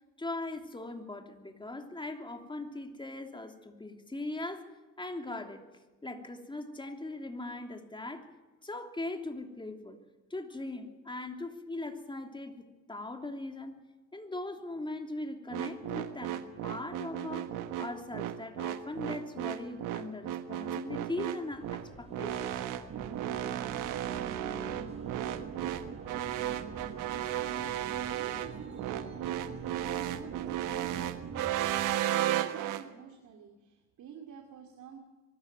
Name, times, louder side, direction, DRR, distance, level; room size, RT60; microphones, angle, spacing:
voice 1, 0.2-4.7 5.0-5.6 6.0-8.3 8.6-10.0 10.3-13.8 14.1-22.5, left 2 dB, 15° left, 4 dB, 3.1 m, -40 dB
sound 1, 15.5-32.8, right 12 dB, 85° right, 1.3 m, -34 dB
sound 2, 21.5-32.0, right 1 dB, 20° right, 4.4 m, -52 dB
sound 3, 22.9-31.5, right 8 dB, 50° right, 1.3 m, -44 dB
voice 2, 26.4-35.0, right 7 dB, 70° right, 3 dB, 2.7 m, -50 dB
23.5 x 13.5 x 9.3 m, 1.2 s
cardioid pair, 85°, 31 cm